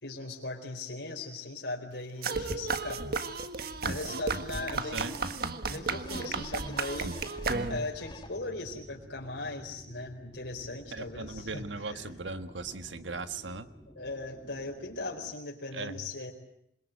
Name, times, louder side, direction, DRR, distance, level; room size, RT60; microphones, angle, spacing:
voice 1, 0.0-3.0 3.8-5.2 5.7-7.1 7.7-12.1 13.9-16.3, left 2 dB, 70° left, 1 dB, 4.4 m, -39 dB
sound 1, 2.2-8.0, right 4 dB, 55° right, 1.6 m, -33 dB
voice 2, 4.6-5.1 10.9-13.7 15.7-16.0, right 3 dB, 85° right, 10 dB, 1.4 m, -39 dB
sound 2, 6.0-8.7 9.2-9.3, left 1 dB, 25° left, 1.9 m, -45 dB
sound 3, 7.4-15.4, equal, 5° right, 2.4 m, -52 dB
27.5 x 22.0 x 9.2 m, 0.76 s
head